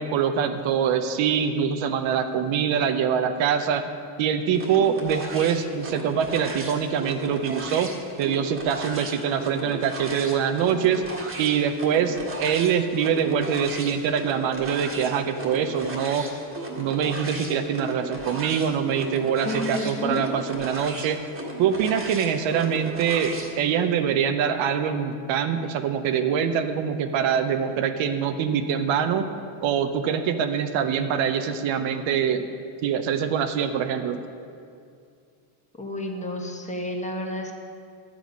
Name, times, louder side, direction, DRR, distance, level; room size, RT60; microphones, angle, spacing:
voice 1, 0.0-3.9 4.2-7.9 8.2-11.0 11.4-16.3 16.8-21.2 21.6-29.3 29.6-32.5 32.8-34.2, right 7 dB, 70° right, 8 dB, 0.8 m, -24 dB
sound 1, 4.5-23.5, right 2 dB, 25° right, 1.6 m, -36 dB
voice 2, 19.4-20.2 35.8-37.5, left 1 dB, 15° left, 2 dB, 1.2 m, -30 dB
11.0 x 7.7 x 5.3 m, 2.4 s
cardioid pair, 115°, 48 cm